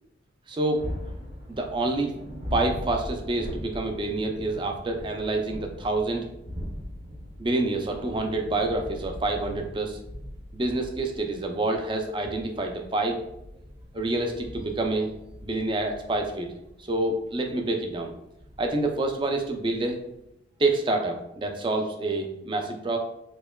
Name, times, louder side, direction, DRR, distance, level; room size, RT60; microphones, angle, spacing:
voice 1, 0.5-0.9 1.5-2.1 2.5-6.2 7.4-10.0 10.5-13.2 13.9-15.1 15.4-16.5 16.9-18.1 18.6-20.0 20.6-23.0, right 2 dB, 25° right, 3 dB, 0.4 m, -27 dB
sound 1, 0.7-20.3, equal, 55° right, 1.3 m, -41 dB
4.5 x 2.8 x 2.2 m, 0.85 s
head